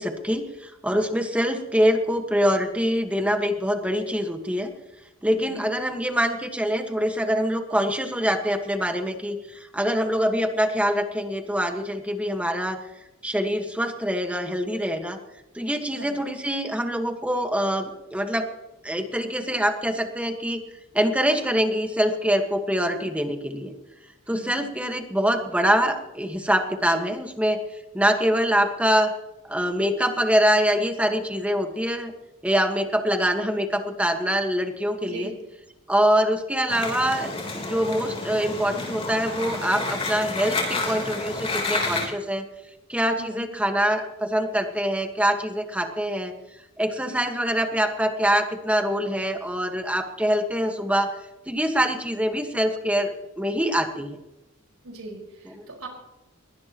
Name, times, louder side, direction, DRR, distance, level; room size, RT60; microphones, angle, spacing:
voice 1, 0.0-4.7 5.2-12.8 13.2-15.2 15.5-18.5 18.8-20.6 20.9-23.7 24.3-27.6 27.9-29.1 29.4-32.1 32.4-35.3 35.9-42.5 42.9-46.3 46.8-51.1 51.5-54.2, equal, 5° right, 5 dB, 1.5 m, -24 dB
voice 2, 24.3-24.7 35.0-35.3 43.2-43.5 54.8-55.9, right 2 dB, 80° right, 0 dB, 4.9 m, -40 dB
sound 1, 36.7-42.1, left 3 dB, 25° left, 3.5 m, -30 dB
21.5 x 18.5 x 3.0 m, 0.97 s
head